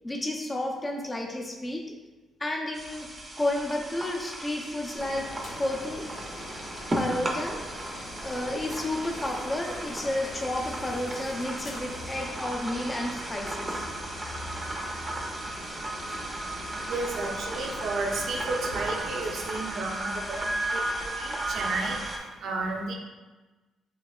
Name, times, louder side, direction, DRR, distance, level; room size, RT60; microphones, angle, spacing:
voice 1, 0.0-1.8 2.4-3.1 3.4-5.3 5.6-6.1 6.9-7.6 8.2-13.8, left 1 dB, 20° left, 1 dB, 0.6 m, -31 dB
sound 1, 2.7-22.2, right 1 dB, 25° right, 0.6 m, -35 dB
sound 2, 5.0-21.1, left 1 dB, 55° left, 0.9 m, -42 dB
voice 2, 16.5-22.9, right 3 dB, 65° right, 1 dB, 0.6 m, -33 dB
5.9 x 2.8 x 2.4 m, 1.2 s
cardioid pair, 90°, 0 cm